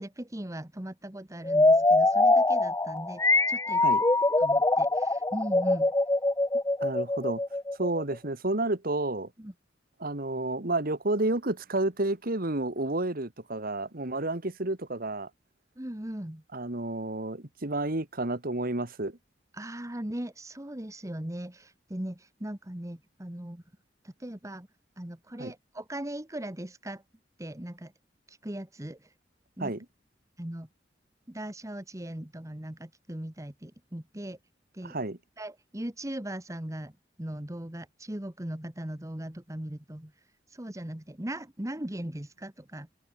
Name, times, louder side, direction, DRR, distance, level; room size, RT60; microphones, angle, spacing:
voice 1, 0.0-3.2 3.5-3.8 4.4-5.9 9.4-9.5 15.8-16.4 19.5-23.6 24.0-24.7 25.0-27.0 27.4-27.9 28.3-29.1 29.6-29.7 30.4-30.7 31.3-34.4 34.7-35.0 35.4-40.1 40.5-42.9, right 1 dB, 15° right, 1.4 m, -39 dB
sound 1, 1.4-8.2, left 2 dB, 15° left, 1.0 m, -23 dB
voice 2, 6.8-7.4 7.8-9.3 10.0-15.3 16.5-19.2 25.4-25.5 29.6-29.9 34.8-35.2, right 2 dB, 50° right, 2.0 m, -30 dB
head